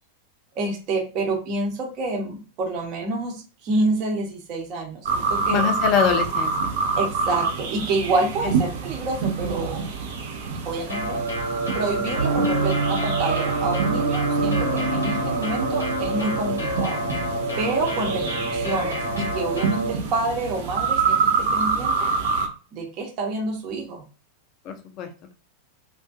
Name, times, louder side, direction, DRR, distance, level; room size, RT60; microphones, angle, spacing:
voice 1, 0.6-5.7 7.0-9.9 10.6-11.2 11.7-17.0 17.6-22.1 22.7-24.0, right 2 dB, 40° right, -1 dB, 0.9 m, -28 dB
sound 1, 5.0-22.5, right 5 dB, 55° right, 0.6 m, -27 dB
voice 2, 5.5-6.7 8.4-8.5 24.6-25.1, left 8 dB, 40° left, 6 dB, 0.5 m, -24 dB
sound 2, 10.9-19.9, right 1 dB, 75° left, 0.9 m, -28 dB
sound 3, 12.2-19.5, right 3 dB, 75° right, 1.0 m, -28 dB
2.5 x 2.4 x 2.4 m, 0.34 s
figure-of-eight pair, 90°, 0 cm